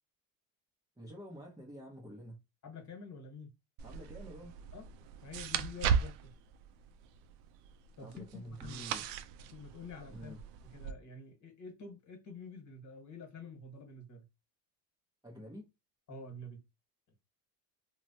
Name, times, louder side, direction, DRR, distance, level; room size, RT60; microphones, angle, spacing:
voice 1, 1.0-2.4 3.8-4.5 8.0-9.0 10.1-10.4 15.2-15.7, equal, 10° right, 0.7 m, -48 dB
voice 2, 2.6-3.5 4.7-4.8 5.2-6.3 8.0-8.9 9.4-10.3 10.6-14.2 16.1-16.6, left 3 dB, 40° left, 1.3 m, -48 dB
sound 1, 3.8-10.9, right 7 dB, 65° right, 0.5 m, -38 dB
3.0 x 2.2 x 2.7 m
supercardioid pair, 110°, 45 cm